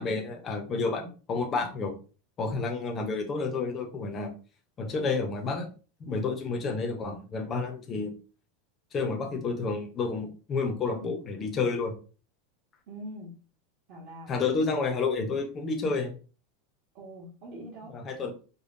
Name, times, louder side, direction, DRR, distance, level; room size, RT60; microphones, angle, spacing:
voice 1, 0.0-2.0 2.4-4.3 4.8-5.7 6.0-8.1 8.9-11.9 14.3-16.1 17.9-18.3, left 4 dB, 20° left, 3 dB, 0.7 m, -30 dB
voice 2, 12.9-13.3 13.9-14.3 16.9-18.0, right 1 dB, 45° right, -5 dB, 1.2 m, -43 dB
5.1 x 2.2 x 2.6 m, 0.35 s
supercardioid pair, 170°, 0 cm